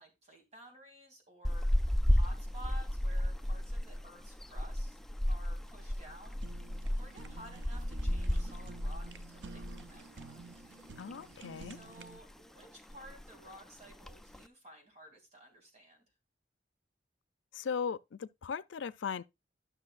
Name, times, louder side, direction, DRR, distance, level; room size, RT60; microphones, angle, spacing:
voice 1, 0.0-1.7 2.1-5.0 5.3-6.4 7.0-10.4 11.6-16.1, equal, 40° right, 2.6 m, -54 dB
sound 1, 1.4-10.0 10.2-10.4 10.8-11.7 12.0-12.4 12.6-12.7 12.9-13.4 13.9-14.4, equal, ahead, 0.4 m, -33 dB
Fire, 5.9-12.2, right 4 dB, 80° right, 0.6 m, -51 dB
voice 2, 11.0-11.8 17.5-19.2, left 6 dB, 85° left, 0.4 m, -38 dB
12.0 x 6.1 x 2.5 m
head